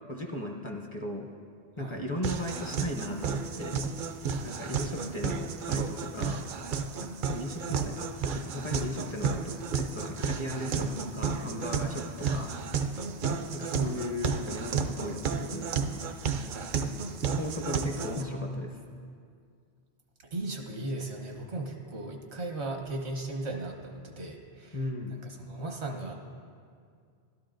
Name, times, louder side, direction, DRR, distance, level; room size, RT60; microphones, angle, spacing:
voice 1, 0.1-1.3 1.8-3.8 4.4-6.5 7.0-12.5 12.9-13.1 13.5-16.1 17.3-18.8 24.7-25.1, left 1 dB, 35° left, 1 dB, 0.6 m, -37 dB
sound 1, 2.2-18.2, right 5 dB, 60° right, 0.6 m, -32 dB
voice 2, 10.4-10.8 13.1-13.4 18.1-18.8 20.3-24.8 25.1-26.1, right 2 dB, 80° right, 3 dB, 1.3 m, -37 dB
12.5 x 12.0 x 2.5 m, 2.2 s
omnidirectional pair, 1.1 m